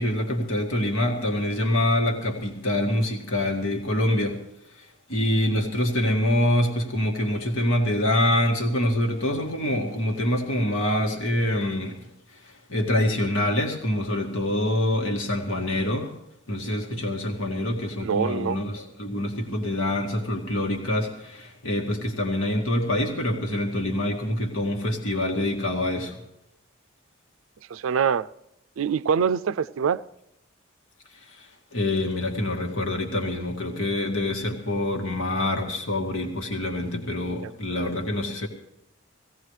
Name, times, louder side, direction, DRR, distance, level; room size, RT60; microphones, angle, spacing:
voice 1, 0.0-4.4 5.1-12.0 12.7-16.1 16.5-26.2 31.3-31.5 31.7-38.5, left 1 dB, 85° left, 2.0 m, -25 dB
voice 2, 18.0-18.6 27.7-28.3 28.8-30.0 37.4-37.9, right 6 dB, 80° right, 0.4 m, -25 dB
17.5 x 16.5 x 3.2 m
head